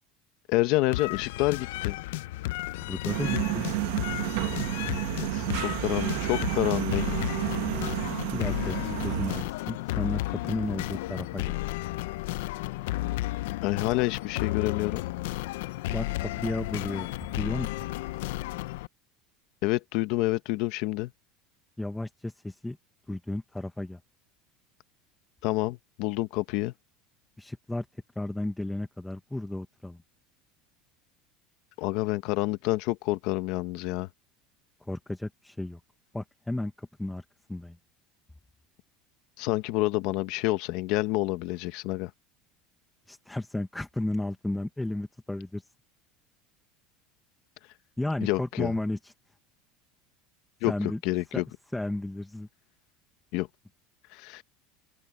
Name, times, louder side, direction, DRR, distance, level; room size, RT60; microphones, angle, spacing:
voice 1, 0.5-2.0 5.2-7.0 13.6-15.0 19.6-21.1 25.4-26.7 31.8-34.1 39.4-42.1 48.2-48.7 50.6-51.4 53.3-53.5 54.1-54.4, left 19 dB, 55° left, 1.1 m, -28 dB
sound 1, 0.9-18.9, left 18 dB, 90° left, 0.4 m, -33 dB
voice 2, 2.8-3.7 8.3-8.8 9.0-11.6 15.9-17.7 21.8-22.8 23.1-24.0 27.4-30.0 34.8-35.8 36.1-37.8 43.1-45.7 48.0-49.1 50.7-51.0 51.3-51.4 51.7-52.5, left 1 dB, 5° left, 0.8 m, -33 dB
sound 2, 3.1-9.4, right 20 dB, 65° right, 0.9 m, -31 dB
cardioid pair, 175°, 0 cm